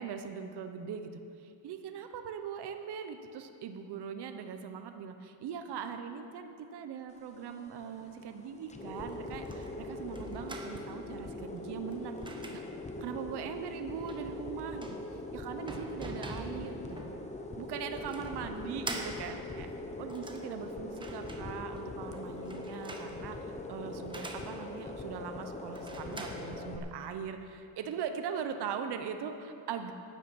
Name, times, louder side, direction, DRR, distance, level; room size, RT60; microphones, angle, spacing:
voice 1, 0.0-12.2 12.5-12.6 13.0-16.8 17.6-19.7 20.0-29.9, right 7 dB, 55° right, 7 dB, 1.0 m, -41 dB
sound 1, 7.1-26.8, left 2 dB, 15° left, 0.8 m, -42 dB
sound 2, 8.7-27.3, right 2 dB, 10° right, 1.0 m, -47 dB
12.0 x 7.9 x 8.5 m, 2.6 s
cardioid pair, 145°, 49 cm